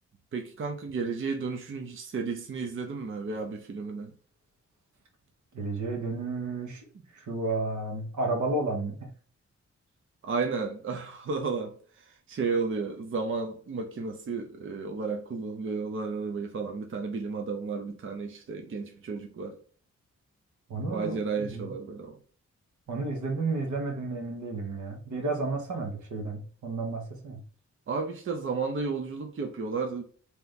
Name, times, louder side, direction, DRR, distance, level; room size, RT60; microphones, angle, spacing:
voice 1, 0.3-4.1 10.2-19.6 20.9-22.2 27.9-30.0, right 4 dB, 45° right, 0.6 m, -33 dB
voice 2, 5.5-6.9 7.1-9.0 20.7-21.7 22.9-27.4, right 3 dB, 80° right, 1.3 m, -32 dB
3.3 x 2.9 x 3.9 m
wide cardioid pair, 155°, 29 cm